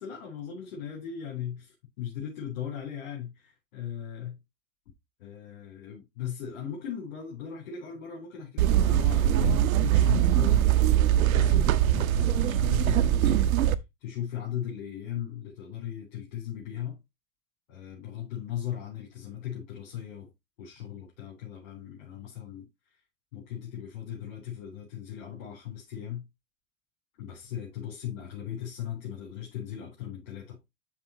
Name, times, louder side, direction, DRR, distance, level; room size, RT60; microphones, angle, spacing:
voice 1, 0.0-4.4 5.2-13.6 14.0-17.0 17.7-20.3 20.6-22.7 23.3-26.3 27.2-30.6, left 9 dB, 75° left, 3.9 m, -38 dB
sound 1, 8.6-13.7, right 12 dB, 80° right, 0.7 m, -22 dB
12.0 x 4.1 x 2.9 m
hypercardioid pair, 90°, 42 cm